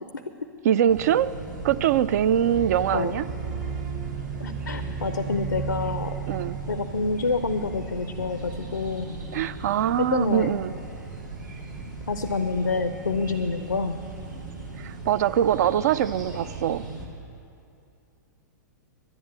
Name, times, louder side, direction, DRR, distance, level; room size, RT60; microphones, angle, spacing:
voice 1, 0.6-1.3 1.6-3.3 6.3-6.6 9.3-10.7 14.8-16.8, right 10 dB, 60° right, 16 dB, 0.4 m, -23 dB
sound 1, 0.9-17.1, right 3 dB, 80° right, 2.9 m, -38 dB
sound 2, 2.5-7.8, right 6 dB, 45° right, 1.2 m, -35 dB
voice 2, 4.4-6.2 6.7-9.2 10.0-10.5 12.1-14.0, left 4 dB, 90° left, 9 dB, 0.6 m, -27 dB
11.0 x 10.5 x 8.8 m, 2.6 s
figure-of-eight pair, 110°, 10 cm